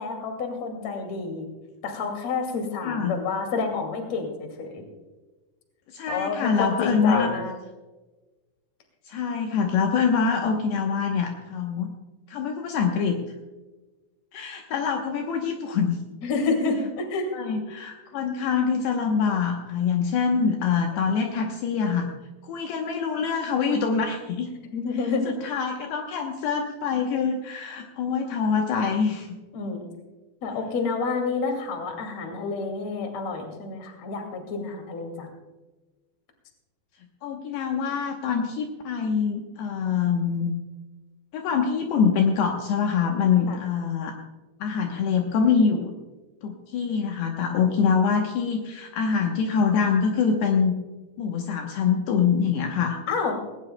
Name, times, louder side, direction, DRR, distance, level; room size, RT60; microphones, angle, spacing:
voice 1, 0.0-1.5 1.8-4.8 6.1-7.5 16.2-17.3 24.7-25.3 29.5-29.9 30.4-35.3 43.5-43.6 53.1-53.3, left 4 dB, 45° left, 4 dB, 2.8 m, -29 dB
voice 2, 2.8-3.1 5.9-7.3 9.1-11.9 12.3-13.2 14.3-16.0 17.3-22.1 22.4-24.5 25.3-29.4 37.2-40.5 41.3-44.2 44.6-45.9 46.4-50.7 51.2-53.0, left 6 dB, 75° left, 2 dB, 2.9 m, -24 dB
18.5 x 18.5 x 2.2 m, 1.2 s
omnidirectional pair, 5.1 m